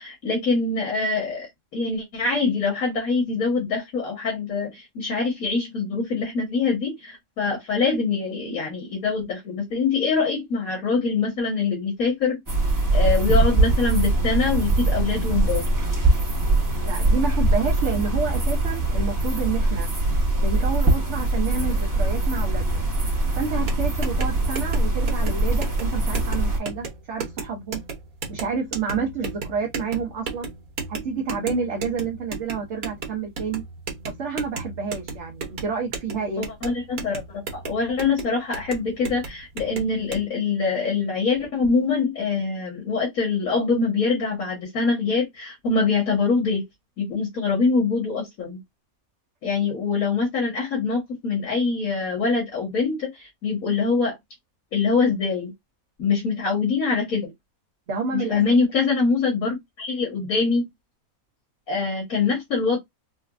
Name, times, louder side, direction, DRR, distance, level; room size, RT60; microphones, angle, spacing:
voice 1, 0.0-1.5 1.7-12.4 12.9-15.6 36.4-46.6 47.0-48.6 49.4-54.2 54.7-55.5 56.0-57.3 58.1-60.7 61.7-62.8, left 4 dB, 75° left, 1.8 m, -24 dB
sound 1, 12.5-26.6, right 2 dB, 15° right, 1.0 m, -22 dB
voice 2, 16.8-22.8 23.4-27.8 28.3-30.5 30.9-33.6 34.2-36.4 57.9-58.6, right 5 dB, 60° right, 1.0 m, -29 dB
sound 2, 23.5-40.2, right 5 dB, 80° right, 1.5 m, -35 dB
4.2 x 2.3 x 2.4 m
omnidirectional pair, 1.5 m